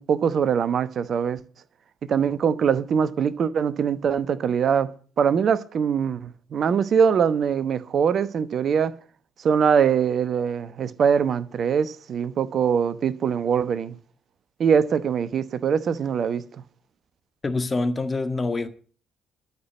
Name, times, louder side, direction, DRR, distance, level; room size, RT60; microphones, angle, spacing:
voice 1, 0.0-1.4 2.1-4.9 5.2-8.9 9.4-13.9 14.6-16.4, right 7 dB, 50° right, 1.0 m, -22 dB
voice 2, 17.4-18.7, left 3 dB, 25° left, 1.7 m, -25 dB
12.5 x 6.1 x 9.3 m
figure-of-eight pair, 45°, 0 cm